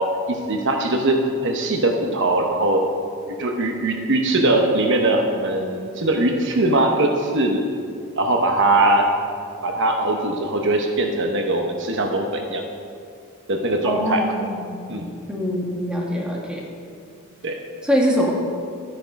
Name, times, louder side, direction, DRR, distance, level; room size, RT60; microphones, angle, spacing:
voice 1, 0.0-2.9 3.4-7.6 8.1-9.1 9.6-12.6 13.5-14.2 14.9-15.1 17.4-17.6, right 2 dB, 60° right, 3 dB, 1.0 m, -21 dB
voice 2, 13.8-14.9 15.3-16.6 17.8-18.4, equal, 5° right, -2 dB, 1.7 m, -23 dB
12.0 x 8.8 x 5.2 m, 2.2 s
head